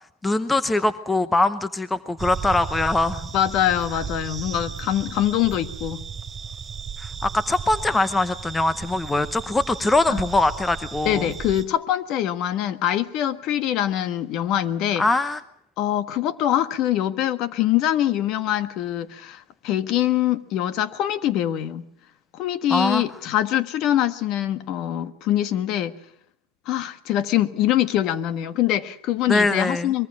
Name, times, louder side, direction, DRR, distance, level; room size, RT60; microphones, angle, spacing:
voice 1, 0.2-3.3 7.0-11.3 15.0-15.4 22.7-23.0 29.3-29.9, left 2 dB, 10° left, 14 dB, 0.8 m, -22 dB
sound 1, 2.2-11.7, right 6 dB, 15° right, 3.5 m, -35 dB
voice 2, 3.3-6.1 10.1-10.2 11.0-15.0 15.8-21.9 22.3-26.0 26.6-30.1, left 12 dB, 45° left, 13 dB, 1.4 m, -24 dB
24.0 x 22.0 x 6.3 m, 0.70 s
supercardioid pair, 140°, 0 cm